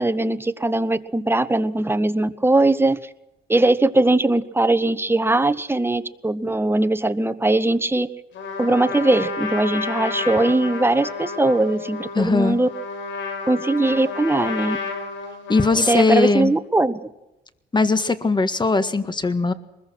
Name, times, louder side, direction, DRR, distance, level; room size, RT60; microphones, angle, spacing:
voice 1, 0.0-3.0 3.5-8.1 8.6-12.7 13.5-14.8 15.7-17.0, right 2 dB, 10° right, 12 dB, 1.1 m, -20 dB
Trumpet, 8.3-16.5, left 4 dB, 75° left, 5.0 m, -31 dB
voice 2, 12.2-12.6 15.5-16.5 17.7-19.5, left 3 dB, 20° left, 11 dB, 1.7 m, -19 dB
23.5 x 21.0 x 6.3 m, 0.96 s
cardioid pair, 90°, 20 cm